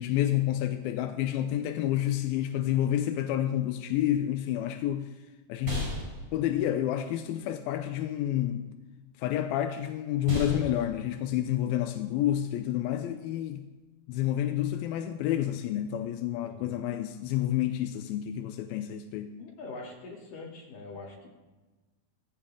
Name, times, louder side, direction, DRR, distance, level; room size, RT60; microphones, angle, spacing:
voice 1, 0.0-5.1 5.5-5.9 6.3-8.7 9.2-13.7 14.1-19.3, left 12 dB, 90° left, 2.5 m, -29 dB
sound 1, 4.3-13.9, equal, 45° right, 6.7 m, -41 dB
voice 2, 16.4-16.7 19.4-21.3, left 3 dB, 65° left, 4.3 m, -43 dB
18.5 x 15.0 x 3.7 m
omnidirectional pair, 4.3 m